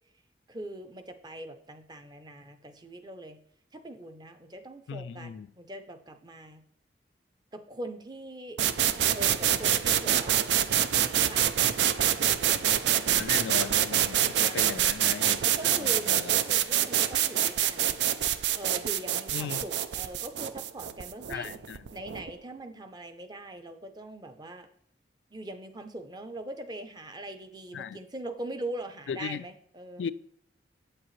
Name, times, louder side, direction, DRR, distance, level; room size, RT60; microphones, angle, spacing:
voice 1, 0.5-3.4 3.7-6.6 7.5-8.6 9.1-10.5 11.0-14.8 15.4-18.0 18.5-21.5 21.9-24.7 25.3-30.1, right 1 dB, 25° right, 0.6 m, -42 dB
voice 2, 4.9-5.5 13.2-16.4 19.3-19.6 21.3-21.9 27.7-28.0 29.1-29.4 30.0-30.1, left 7 dB, 80° left, 0.3 m, -37 dB
sound 1, 8.6-22.3, right 10 dB, 80° right, 0.4 m, -26 dB
8.3 x 7.5 x 3.2 m
head